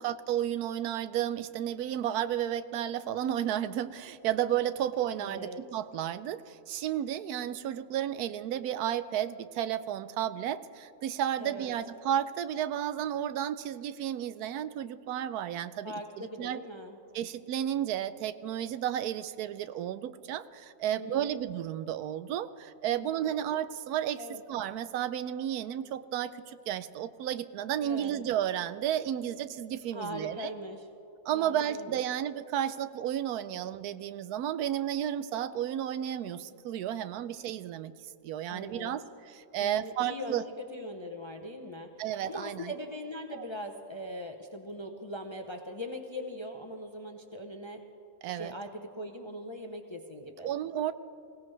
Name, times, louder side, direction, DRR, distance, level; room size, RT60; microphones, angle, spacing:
voice 1, 0.0-16.6 17.1-24.2 24.5-30.5 31.2-37.9 38.2-39.0 39.3-40.4 42.0-42.7 43.4-43.5 48.2-48.5 50.4-50.9, right 10 dB, 90° right, 13 dB, 1.1 m, -32 dB
voice 2, 5.1-5.6 11.4-11.7 15.8-17.0 20.9-21.4 22.9-23.3 24.2-24.4 27.8-28.2 29.9-30.9 31.3-32.0 38.5-38.9 39.6-47.8 48.3-50.5, equal, 30° left, 4 dB, 0.5 m, -41 dB
21.0 x 17.0 x 3.3 m, 2.8 s
omnidirectional pair, 1.6 m